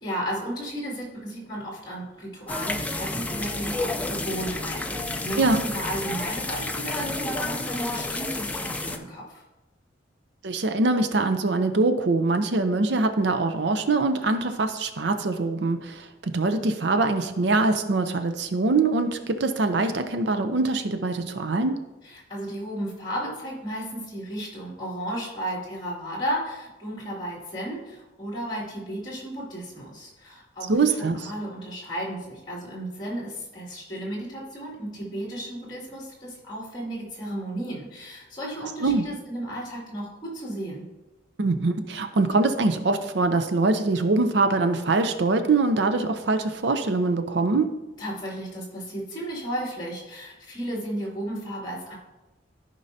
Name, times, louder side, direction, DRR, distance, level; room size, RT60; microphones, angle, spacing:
voice 1, 0.0-9.4 22.0-40.8 48.0-51.9, right 1 dB, 25° left, -4 dB, 2.4 m, -34 dB
sound 1, 2.5-9.0, left 2 dB, 10° left, 0.4 m, -30 dB
voice 2, 10.4-21.8 30.7-31.2 38.8-39.0 41.4-47.7, right 3 dB, 65° right, 8 dB, 0.6 m, -23 dB
14.0 x 5.4 x 2.7 m, 1.1 s
head